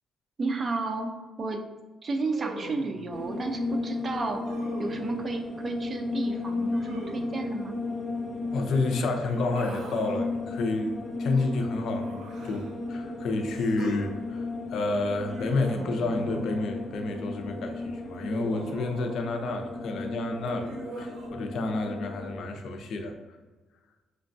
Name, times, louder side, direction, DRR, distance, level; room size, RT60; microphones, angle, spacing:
voice 1, 0.4-1.1 1.4-1.6 2.0-4.4 4.8-7.8, right 3 dB, 40° right, 4 dB, 0.5 m, -32 dB
Human voice, 2.2-3.0 4.4-5.1 6.7-7.5 9.1-10.2 11.3-12.8 13.5-14.0 15.2-16.8 18.2-19.4 20.4-21.3, right 2 dB, 75° right, 0.7 m, -42 dB
sound 1, 3.1-22.4, left 3 dB, 30° left, 1.0 m, -35 dB
voice 2, 8.5-10.9 11.2-23.1, left 3 dB, 70° left, 4 dB, 0.5 m, -30 dB
5.5 x 2.2 x 2.6 m, 1.3 s
cardioid pair, 90°, 0 cm